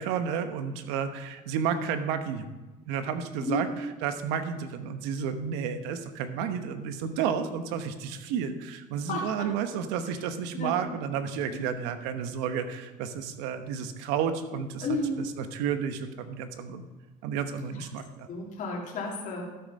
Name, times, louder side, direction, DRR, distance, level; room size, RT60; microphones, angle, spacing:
voice 1, 0.0-2.5 2.9-14.9 15.2-16.9 17.2-18.3, right 7 dB, 90° right, 9 dB, 1.1 m, -31 dB
voice 2, 9.1-9.5 10.5-10.9 11.6-11.7 14.8-15.2 17.8-17.9 18.3-19.5, left 1 dB, 50° left, -1 dB, 2.5 m, -32 dB
12.5 x 6.5 x 5.4 m, 1.2 s
cardioid pair, 130°, 16 cm